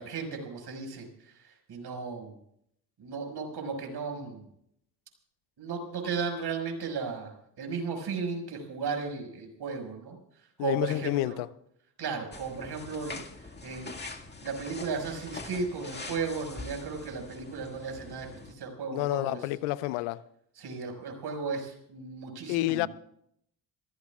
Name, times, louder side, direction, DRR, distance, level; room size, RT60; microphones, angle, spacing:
voice 1, 0.0-2.3 3.0-4.4 5.6-10.2 10.6-11.4 12.0-13.2 13.6-13.9 14.4-18.3 18.5-19.4 20.6-22.9, right 5 dB, 50° right, 5.8 m, -35 dB
voice 2, 10.6-11.5 18.9-20.2 22.5-22.9, left 17 dB, 75° left, 0.7 m, -29 dB
sound 1, 12.3-18.5, left 3 dB, 20° left, 2.0 m, -43 dB
27.0 x 17.5 x 2.4 m
hypercardioid pair, 55°, 50 cm